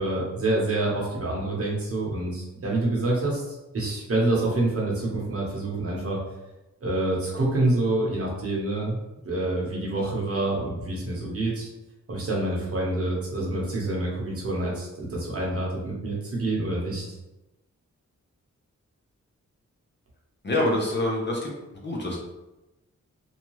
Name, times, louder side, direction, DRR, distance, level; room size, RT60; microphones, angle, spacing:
voice 1, 0.0-6.2 6.8-9.0 9.2-11.7 12.1-17.2, right 2 dB, 50° right, -4 dB, 1.0 m, -27 dB
voice 2, 20.4-22.2, left 1 dB, 40° left, -2 dB, 0.6 m, -26 dB
2.7 x 2.2 x 3.0 m, 0.98 s
wide cardioid pair, 115°, 29 cm